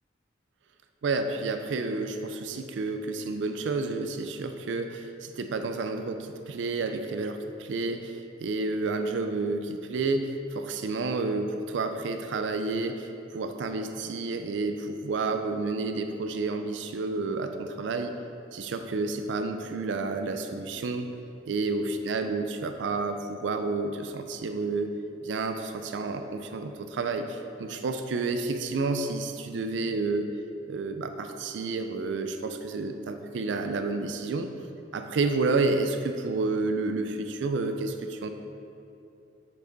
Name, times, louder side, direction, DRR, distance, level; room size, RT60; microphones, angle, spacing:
voice 1, 1.0-18.2 18.5-21.1 21.5-24.9 25.2-30.3 30.7-34.5 34.9-38.3, right 3 dB, 75° right, 7 dB, 0.4 m, -30 dB
6.9 x 4.9 x 4.0 m, 2.7 s
head